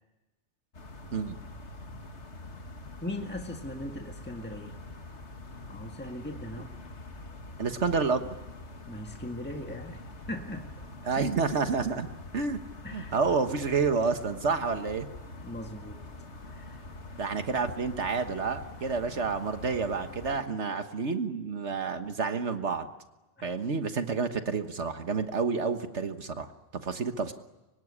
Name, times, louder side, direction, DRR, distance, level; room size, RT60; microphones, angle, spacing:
sound 1, 0.7-20.4, left 2 dB, 65° left, 2.2 m, -45 dB
voice 1, 3.0-4.8 5.7-6.7 8.9-10.0 10.3-10.6 11.1-11.2 12.8-13.1 15.4-16.0 16.5-16.8 19.1-19.2 23.4-23.5, left 1 dB, 10° left, 3 dB, 1.8 m, -39 dB
voice 2, 7.6-8.3 11.0-12.1 12.3-12.6 12.9-15.1 17.2-22.9 23.4-26.5 26.8-27.3, right 4 dB, 65° right, 8 dB, 1.6 m, -29 dB
25.0 x 23.5 x 9.9 m, 1.1 s
omnidirectional pair, 1.3 m